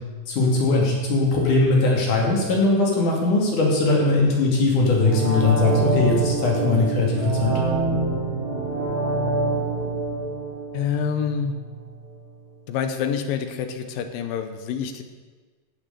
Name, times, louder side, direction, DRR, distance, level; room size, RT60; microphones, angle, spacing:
voice 1, 0.3-7.5, left 3 dB, 55° left, -2 dB, 4.0 m, -20 dB
sound 1, 4.9-11.8 12.1-12.2, right 2 dB, 80° right, 7.2 m, -26 dB
voice 2, 10.7-11.6 12.7-15.0, left 7 dB, 75° left, 8 dB, 2.6 m, -27 dB
16.0 x 6.7 x 6.9 m, 1.4 s
omnidirectional pair, 4.3 m